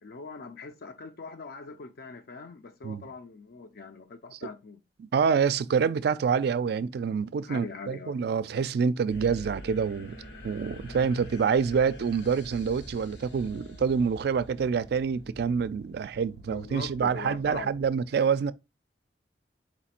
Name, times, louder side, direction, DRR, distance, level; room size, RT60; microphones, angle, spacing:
voice 1, 0.0-4.8 7.5-8.2 16.5-17.8, left 4 dB, 60° left, 0.5 m, -42 dB
voice 2, 5.0-10.2 10.4-18.5, right 6 dB, 60° right, 0.3 m, -27 dB
sound 1, 9.1-17.9, equal, 90° left, 1.1 m, -46 dB
4.3 x 2.5 x 4.2 m
head